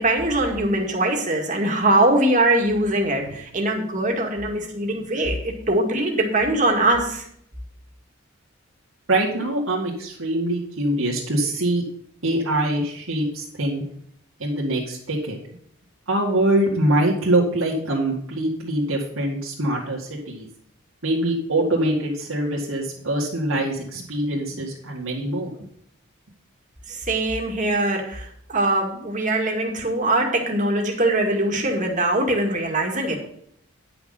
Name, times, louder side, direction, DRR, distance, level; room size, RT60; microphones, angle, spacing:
voice 1, 0.0-7.2 26.9-33.2, right 1 dB, 35° right, 2 dB, 2.0 m, -22 dB
voice 2, 9.1-11.8 12.2-13.8 14.4-15.4 16.1-20.5 21.0-25.5, right 1 dB, 75° right, -4 dB, 2.2 m, -23 dB
10.5 x 6.0 x 5.7 m, 0.67 s
head